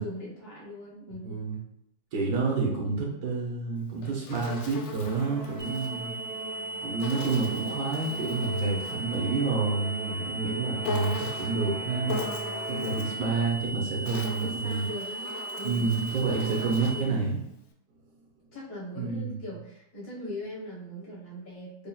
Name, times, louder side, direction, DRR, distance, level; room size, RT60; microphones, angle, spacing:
voice 1, 0.0-1.4 12.7-13.1 14.4-15.9 16.9-17.3 18.5-21.9, left 1 dB, 65° left, -5 dB, 1.7 m, -40 dB
voice 2, 1.2-1.6 2.1-6.1 6.8-12.1 12.7-14.9 15.6-17.4 18.9-19.4, right 4 dB, 65° right, -2 dB, 1.4 m, -29 dB
Insect, 3.8-5.9 7.0-9.1 10.8-11.6 12.1-13.2 13.8-17.1, left 3 dB, 90° left, 0.6 m, -39 dB
Musical instrument, 5.1-13.6, right 1 dB, 40° right, 0.4 m, -40 dB
sound 1, 5.6-17.0, right 2 dB, 80° right, 1.9 m, -37 dB
5.2 x 2.5 x 2.3 m, 0.78 s
omnidirectional pair, 1.8 m